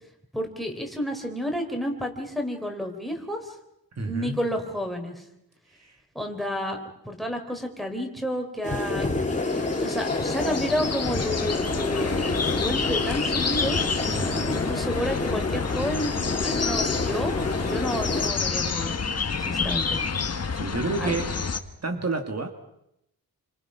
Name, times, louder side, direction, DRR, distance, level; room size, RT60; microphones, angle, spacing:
voice 1, 0.3-3.5 4.0-5.2 6.1-6.8 7.0-9.1 9.8-13.8 14.5-19.0 19.5-20.0 21.0-21.2, equal, ahead, 5 dB, 3.9 m, -30 dB
voice 2, 4.0-4.4 5.8-5.9 14.1-14.5 20.5-21.3 21.8-22.5, right 3 dB, 45° right, 4 dB, 2.1 m, -30 dB
sound 1, 8.6-18.3, left 2 dB, 20° left, 3.2 m, -29 dB
sound 2, 9.4-21.6, left 5 dB, 45° left, 1.5 m, -29 dB
29.5 x 25.5 x 5.9 m, 0.81 s
wide cardioid pair, 170°, 37 cm